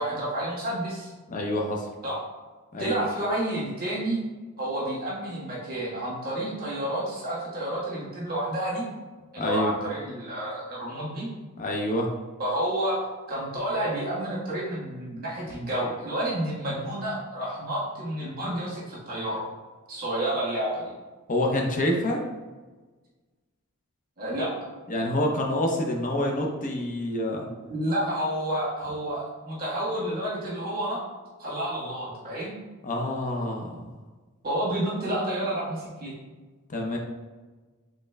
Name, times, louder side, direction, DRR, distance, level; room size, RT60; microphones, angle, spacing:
voice 1, 0.0-1.1 2.0-2.2 2.8-4.2 4.6-8.9 9.3-11.3 12.4-13.0 13.3-19.4 19.9-20.9 24.2-24.5 27.6-31.0 31.4-32.5 34.4-36.1, right 1 dB, 45° right, -6 dB, 1.4 m, -30 dB
voice 2, 1.3-1.8 2.7-3.0 9.4-9.7 11.6-12.1 21.3-22.2 24.9-27.5 32.8-33.8 36.7-37.0, left 1 dB, 35° left, 0 dB, 0.6 m, -27 dB
4.2 x 3.6 x 2.2 m, 1.3 s
head